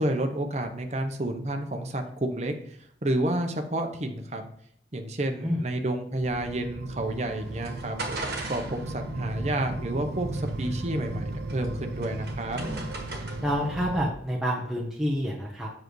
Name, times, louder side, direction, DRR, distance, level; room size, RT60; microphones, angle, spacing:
voice 1, 0.0-4.5 4.9-8.0 8.5-12.6, right 1 dB, 40° right, 6 dB, 0.8 m, -30 dB
sound 1, 6.2-14.1, right 2 dB, 75° right, 0.6 m, -35 dB
sound 2, 7.0-13.7, right 2 dB, 60° right, 1.4 m, -40 dB
voice 2, 13.4-15.7, equal, 5° right, -4 dB, 0.9 m, -28 dB
7.5 x 6.5 x 3.1 m, 0.68 s
head